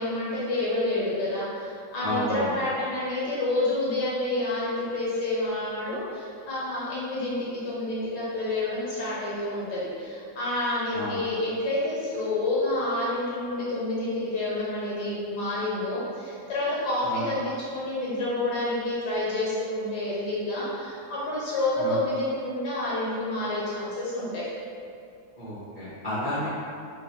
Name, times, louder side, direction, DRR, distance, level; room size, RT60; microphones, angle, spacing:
voice 1, 0.0-24.4, left 2 dB, 60° left, -8 dB, 1.4 m, -29 dB
voice 2, 2.0-2.5 10.9-11.2 17.0-17.3 21.8-22.0 25.4-26.5, equal, 35° right, -14 dB, 0.8 m, -31 dB
3.9 x 2.5 x 2.9 m, 2.4 s
omnidirectional pair, 2.2 m